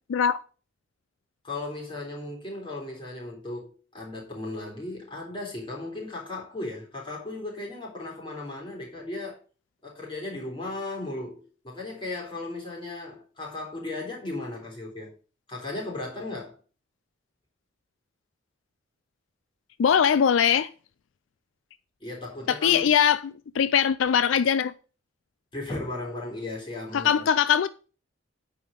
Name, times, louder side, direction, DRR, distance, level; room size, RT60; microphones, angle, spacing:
voice 1, 1.4-9.4 9.8-15.1 15.5-16.6 22.0-22.9 25.5-27.3, left 2 dB, 25° left, 3.7 m, -36 dB
voice 2, 19.8-20.7 22.5-24.7 26.9-27.7, left 8 dB, 80° left, 0.4 m, -21 dB
9.2 x 5.0 x 5.1 m
head